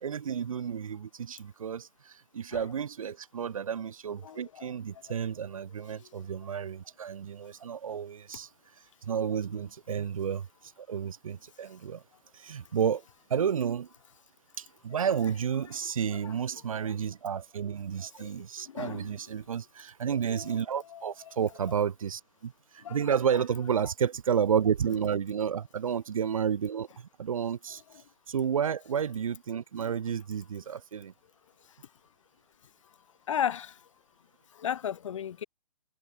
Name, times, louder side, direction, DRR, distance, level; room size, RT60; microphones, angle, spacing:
voice 1, 0.0-8.5 9.1-10.5 10.8-12.0 12.3-13.0 13.3-13.9 14.6-27.8 28.3-31.1, right 7 dB, 65° right, 1.5 m, -31 dB
voice 2, 4.2-4.7 18.2-18.3 18.7-19.2 20.3-20.5 20.9-21.1 22.8-23.0 33.3-33.7 34.6-35.4, left 9 dB, 60° left, 1.8 m, -34 dB
figure-of-eight pair, 130°, 18 cm